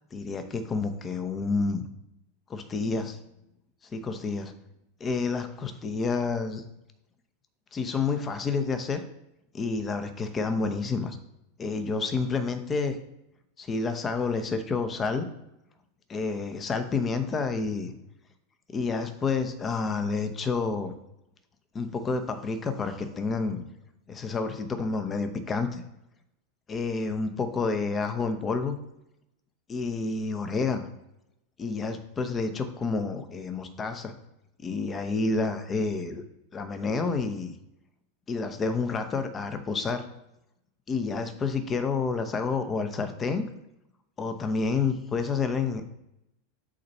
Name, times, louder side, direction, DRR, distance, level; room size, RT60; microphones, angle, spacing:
voice 1, 0.1-1.8 2.5-3.2 3.9-4.5 5.0-6.6 7.7-9.0 9.5-11.2 11.6-12.9 13.6-15.3 16.1-17.9 18.7-20.9 21.7-23.6 24.1-25.8 26.7-28.8 29.7-30.9 31.6-34.1 34.6-36.2 36.5-37.5 38.3-40.0 40.9-43.4 44.2-45.8, left 4 dB, 25° left, 8 dB, 0.8 m, -29 dB
5.0 x 4.2 x 5.5 m, 0.86 s
figure-of-eight pair, 85°, 0 cm